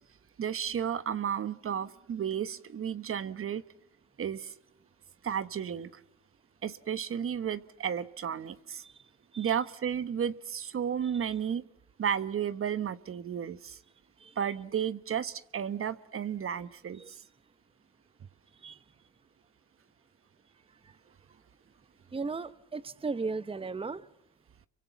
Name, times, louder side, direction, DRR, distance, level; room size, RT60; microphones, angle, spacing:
voice 1, 0.4-3.6 4.2-4.5 5.2-5.9 6.6-8.8 9.4-11.6 12.0-13.8 14.4-17.2, right 8 dB, 45° right, 14 dB, 1.1 m, -33 dB
voice 2, 22.1-24.0, right 4 dB, 20° right, 14 dB, 1.0 m, -36 dB
28.0 x 24.0 x 7.0 m, 0.81 s
cardioid pair, 85°, 30 cm